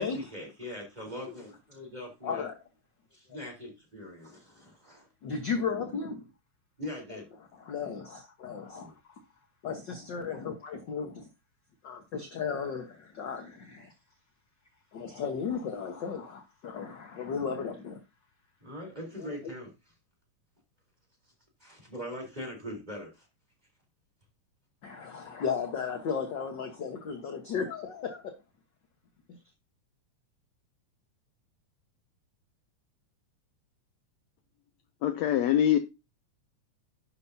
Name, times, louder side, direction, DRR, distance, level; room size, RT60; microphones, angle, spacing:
voice 1, 0.0-2.5 3.1-5.1 6.8-7.3 8.8-8.9 18.6-19.7 21.6-23.3, left 1 dB, 15° right, 3.5 m, -41 dB
voice 2, 2.2-2.6 3.3-3.4 5.2-6.3 7.1-7.2 7.5-8.9 9.6-11.3 11.8-13.9 14.9-18.0 19.2-19.5 24.8-28.3 29.3-29.4, left 6 dB, 55° left, 1.3 m, -35 dB
voice 3, 35.0-35.8, left 10 dB, 75° left, 1.7 m, -23 dB
11.5 x 7.9 x 2.7 m
omnidirectional pair, 3.6 m